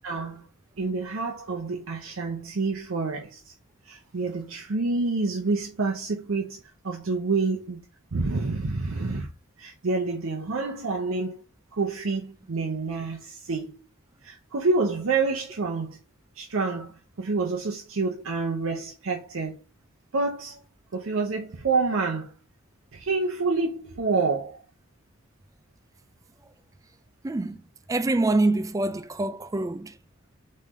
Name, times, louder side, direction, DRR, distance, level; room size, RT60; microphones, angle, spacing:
voice 1, 0.0-0.5 0.8-3.5 3.9-7.8 8.1-9.3 9.6-11.4 11.7-13.8 14.2-16.0 16.4-19.6 20.1-20.6 20.9-22.3 22.9-24.6, right 3 dB, 70° right, 0.7 m, -28 dB
voice 2, 27.2-27.6 27.9-29.9, right 2 dB, 15° right, 0.3 m, -25 dB
3.7 x 3.2 x 4.1 m
head